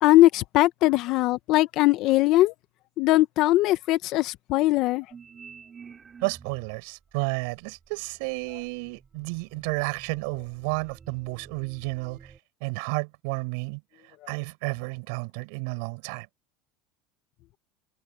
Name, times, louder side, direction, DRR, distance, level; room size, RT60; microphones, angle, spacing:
voice 1, 0.0-2.5 3.0-5.0, left 17 dB, 55° left, 1.1 m, -20 dB
sound 1, 5.1-6.8 7.5-12.4, right 6 dB, 25° right, 3.9 m, -49 dB
voice 2, 6.2-12.3 12.6-13.8 14.3-16.3, right 31 dB, 75° right, 7.2 m, -31 dB
supercardioid pair, 135°, 0 cm